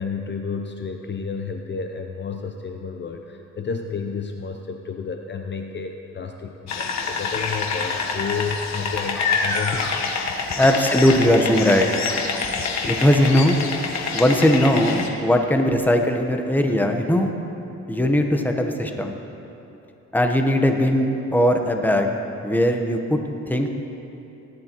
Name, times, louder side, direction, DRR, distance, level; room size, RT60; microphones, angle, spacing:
voice 1, 0.0-9.9 12.4-12.7, left 5 dB, 35° left, 4 dB, 0.7 m, -31 dB
sound 1, 6.7-15.1, left 4 dB, 60° left, 1.2 m, -26 dB
voice 2, 10.5-11.9 12.9-13.6 14.1-17.3 17.9-19.2 20.1-22.1 22.4-23.2 23.5-23.7, left 1 dB, 5° left, 4 dB, 1.0 m, -19 dB
18.0 x 11.0 x 3.0 m, 2.9 s
cardioid pair, 90°, 30 cm